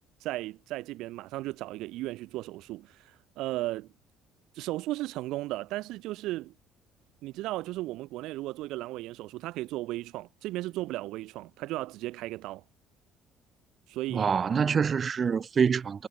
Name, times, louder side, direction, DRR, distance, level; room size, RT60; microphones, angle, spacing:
voice 1, 0.2-3.9 4.5-6.5 7.2-12.6 13.9-14.3, right 17 dB, 75° right, 1.8 m, -35 dB
voice 2, 14.1-16.1, right 6 dB, 35° right, 1.3 m, -26 dB
cardioid pair, 125°, 0 cm